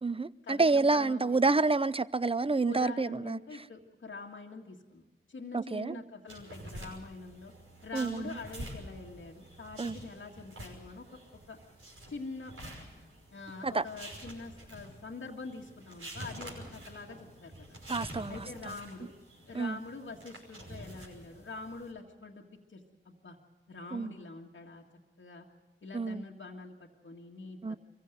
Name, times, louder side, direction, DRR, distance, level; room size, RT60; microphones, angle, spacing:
voice 1, 0.0-3.7 5.5-6.0 7.9-8.4 9.8-10.0 13.6-13.9 17.9-18.8 19.5-19.8 23.9-24.1 25.9-26.3 27.6-27.8, right 3 dB, 25° right, 0.7 m, -29 dB
voice 2, 0.9-1.4 2.7-7.5 7.8-11.2 11.5-11.6 12.1-12.5 13.3-17.8 18.3-19.1 19.5-22.4 22.7-23.4 23.7-24.8 25.2-25.5 25.8-26.7 27.0-27.8, left 3 dB, 70° left, 1.8 m, -45 dB
sound 1, 6.3-21.9, right 1 dB, 90° right, 5.7 m, -48 dB
23.0 x 16.0 x 7.8 m
cardioid pair, 40°, 21 cm